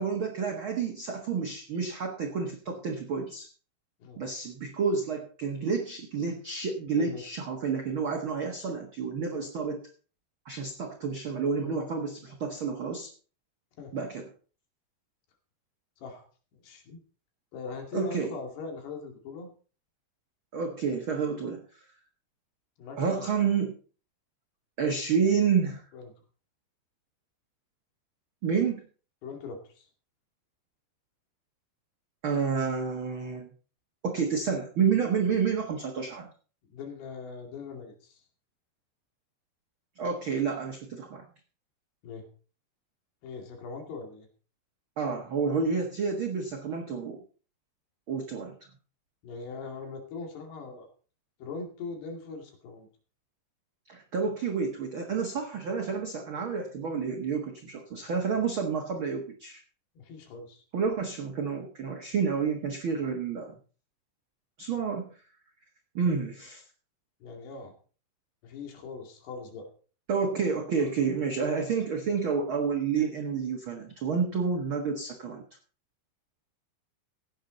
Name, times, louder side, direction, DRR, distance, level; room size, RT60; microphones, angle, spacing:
voice 1, 0.0-3.5 4.2-9.8 10.4-13.1 13.9-14.3 17.9-18.3 20.5-21.6 23.0-23.7 24.8-25.8 28.4-28.8 32.2-33.5 34.0-36.3 40.0-41.2 45.0-47.2 48.1-48.5 53.9-59.6 60.7-63.6 64.6-65.1 65.9-66.6 70.1-75.4, right 5 dB, 55° right, 2 dB, 1.4 m, -29 dB
voice 2, 16.6-17.0 17.5-19.5 22.8-23.5 25.9-26.1 29.2-29.9 36.7-38.2 42.0-42.3 43.2-44.3 49.2-50.9 51.4-52.9 60.0-60.6 67.2-67.8 68.4-69.7, left 4 dB, 90° left, 3 dB, 4.6 m, -41 dB
16.5 x 9.4 x 4.0 m, 0.39 s
omnidirectional pair, 4.6 m